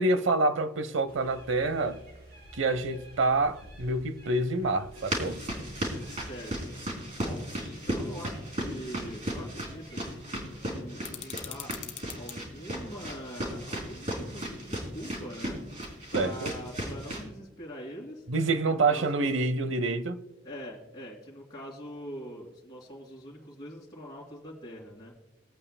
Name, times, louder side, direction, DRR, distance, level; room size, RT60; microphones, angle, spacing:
voice 1, 0.0-2.0 2.5-5.4 16.1-16.5 18.3-20.2, right 2 dB, 75° right, 0.7 m, -27 dB
sound 1, 1.1-10.7, equal, 55° right, 4.0 m, -53 dB
sound 2, 4.9-17.2, equal, 40° right, 3.8 m, -36 dB
voice 2, 6.1-6.5 6.8-11.7 12.2-15.6 16.1-18.2 18.7-19.3 20.4-25.1, equal, 20° left, 2.7 m, -43 dB
sound 3, 11.0-12.4, left 10 dB, 40° left, 1.1 m, -42 dB
23.5 x 8.8 x 2.2 m
head